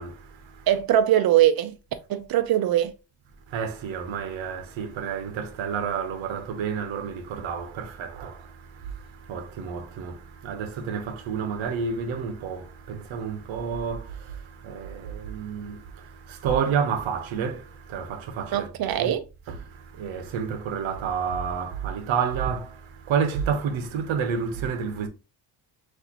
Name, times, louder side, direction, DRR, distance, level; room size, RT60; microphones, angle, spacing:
voice 1, 0.0-0.7 3.5-18.7 19.0-19.1 19.5-25.1, right 6 dB, 75° right, 1.1 m, -30 dB
voice 2, 0.7-1.8 2.1-2.9 18.5-19.2, right 11 dB, 50° right, 0.6 m, -21 dB
6.3 x 2.6 x 3.0 m
cardioid pair, 180°, 47 cm